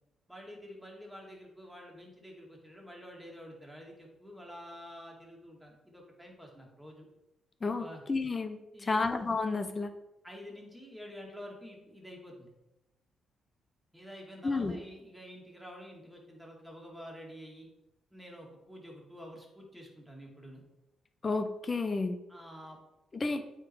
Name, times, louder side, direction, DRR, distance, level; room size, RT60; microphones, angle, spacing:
voice 1, 0.3-7.1 7.8-8.0 8.7-9.1 10.2-12.5 13.9-17.7 18.1-20.6 22.3-22.8, equal, ahead, -1 dB, 2.3 m, -48 dB
voice 2, 7.6-9.9 14.4-14.8 21.2-22.2 23.1-23.4, left 3 dB, 35° left, 8 dB, 0.6 m, -31 dB
8.9 x 3.9 x 4.6 m, 0.93 s
cardioid pair, 75°, 0 cm